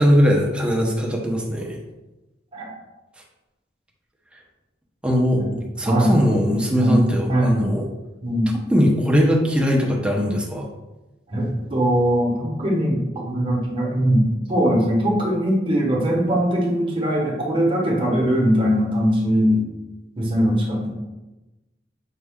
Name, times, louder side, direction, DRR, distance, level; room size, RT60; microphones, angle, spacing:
voice 1, 0.0-1.8 5.0-5.4 5.8-7.8 8.7-10.7, equal, 5° right, -1 dB, 0.6 m, -20 dB
voice 2, 8.2-8.5 11.3-19.7 20.2-20.9, equal, 30° right, -3 dB, 1.0 m, -21 dB
5.3 x 2.3 x 3.5 m, 1.1 s
head